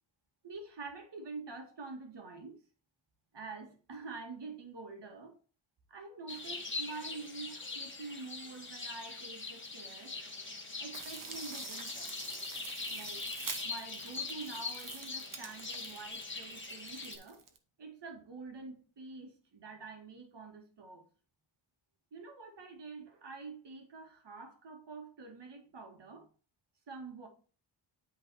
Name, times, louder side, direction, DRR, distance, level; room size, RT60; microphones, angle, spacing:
voice 1, 0.4-2.6 3.3-5.4 5.9-10.2 10.8-12.1 12.9-13.3 13.6-17.4 17.8-21.1 22.1-26.3 26.9-27.3, right 4 dB, 60° right, 1.9 m, -47 dB
sound 1, 6.3-17.2, left 3 dB, 25° left, 1.8 m, -42 dB
sound 2, 10.9-17.6, right 5 dB, 40° right, 1.2 m, -47 dB
8.0 x 4.0 x 4.6 m
cardioid pair, 65°, 48 cm